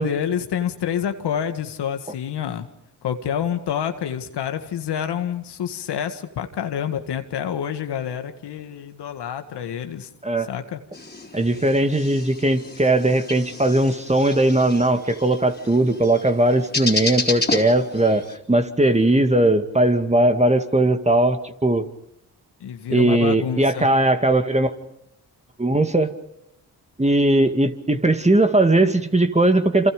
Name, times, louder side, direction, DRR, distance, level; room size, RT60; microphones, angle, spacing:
voice 1, 0.0-2.7 3.0-10.1 10.5-10.8 22.6-23.9, left 9 dB, 80° left, 7 dB, 1.9 m, -27 dB
sound 1, 10.9-18.4, left 3 dB, 25° left, 3.8 m, -31 dB
voice 2, 11.3-21.9 22.9-24.7 25.6-26.1 27.0-29.9, right 1 dB, 15° right, 7 dB, 2.2 m, -19 dB
27.5 x 27.5 x 5.2 m, 0.79 s
supercardioid pair, 50°, 40 cm